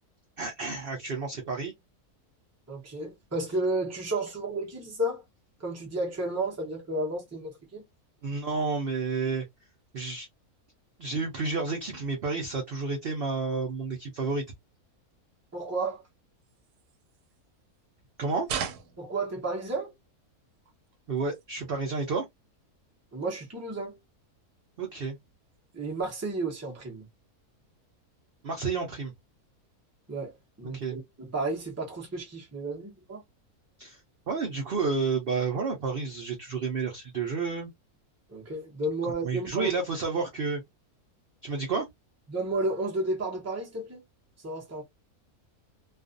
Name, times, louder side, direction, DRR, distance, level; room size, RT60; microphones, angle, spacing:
voice 1, 0.4-1.7 8.2-9.4 9.9-10.3 11.0-14.4 18.2-18.5 21.1-22.3 24.8-25.2 28.4-29.1 30.7-31.0 33.8-34.0 34.3-37.7 39.0-40.6 41.4-41.9, right 4 dB, 60° right, 0.6 m, -30 dB
voice 2, 2.7-5.2 5.6-7.8 15.5-16.0 19.0-19.9 23.1-24.0 25.7-27.1 30.1-30.3 30.6-33.2 38.3-39.7 42.3-44.0 44.4-44.8, right 2 dB, 15° right, 0.5 m, -32 dB
sound 1, 16.4-18.0 18.4-20.0 20.4-21.8 22.2-22.6 22.9-23.0 23.2-23.7 24.1-24.3 24.7-25.2 25.5-26.6, right 8 dB, 85° right, 1.1 m, -42 dB
2.4 x 2.4 x 2.4 m
omnidirectional pair, 1.6 m